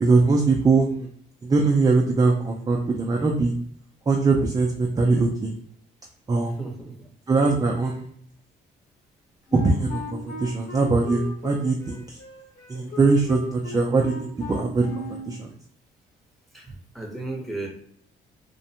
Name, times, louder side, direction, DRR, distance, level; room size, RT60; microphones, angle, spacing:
voice 1, 0.0-1.1 1.4-3.5 4.1-5.5 6.3-6.5 7.3-8.1 9.5-12.2 12.7-15.5, right 3 dB, 20° right, 1 dB, 0.3 m, -22 dB
voice 2, 6.4-7.1 16.5-17.7, right 2 dB, ahead, -1 dB, 0.8 m, -35 dB
Wind instrument woodwind instrument, 9.5-15.4, left 2 dB, 40° left, 1.0 m, -37 dB
2.5 x 2.1 x 2.7 m, 0.64 s
cardioid pair, 90°, 20 cm